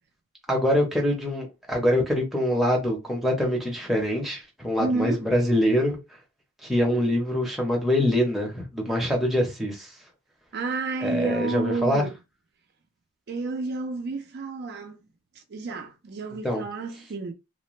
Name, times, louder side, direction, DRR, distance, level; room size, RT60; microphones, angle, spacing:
voice 1, 0.5-6.0 6.6-9.9 11.0-12.1 16.4-16.6, equal, ahead, 0.6 m, -24 dB
voice 2, 4.8-5.2 10.5-12.1 13.3-15.0 15.5-17.3, right 3 dB, 50° right, 0.4 m, -30 dB
2.4 x 2.1 x 3.0 m
head